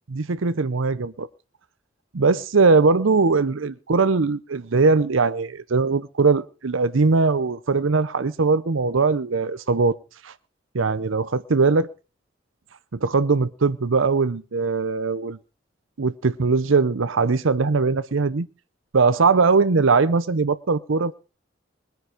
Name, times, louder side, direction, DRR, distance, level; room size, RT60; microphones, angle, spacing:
voice 1, 0.1-1.3 2.1-10.0 10.2-10.3 10.7-11.9 12.9-15.4 16.0-18.5 18.9-21.1, right 4 dB, 80° right, 0.7 m, -20 dB
21.0 x 9.4 x 5.0 m
head